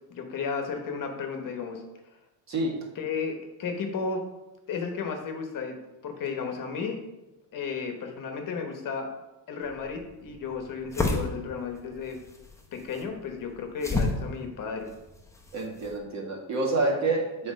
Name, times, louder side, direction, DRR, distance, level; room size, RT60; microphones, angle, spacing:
voice 1, 0.1-1.8 3.0-4.2 4.7-7.0 7.5-9.1 9.5-12.2 12.7-14.9, left 5 dB, 50° left, 4 dB, 1.1 m, -33 dB
sound 1, 9.6-16.0, left 2 dB, 5° left, 0.8 m, -34 dB
voice 2, 15.5-17.5, right 2 dB, 40° right, -1 dB, 1.8 m, -28 dB
7.6 x 4.3 x 5.2 m, 1.0 s
cardioid pair, 165°, 43 cm